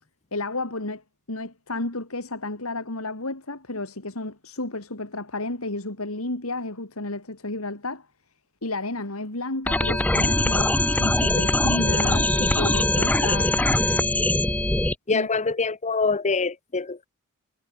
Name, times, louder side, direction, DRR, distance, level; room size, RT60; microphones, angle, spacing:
voice 1, 0.3-8.1 8.6-13.6 15.1-15.3, left 2 dB, 75° left, 3.5 m, -32 dB
sound 1, 9.7-14.9, left 1 dB, 5° left, 0.5 m, -22 dB
voice 2, 15.1-17.1, left 4 dB, 30° left, 0.9 m, -25 dB
head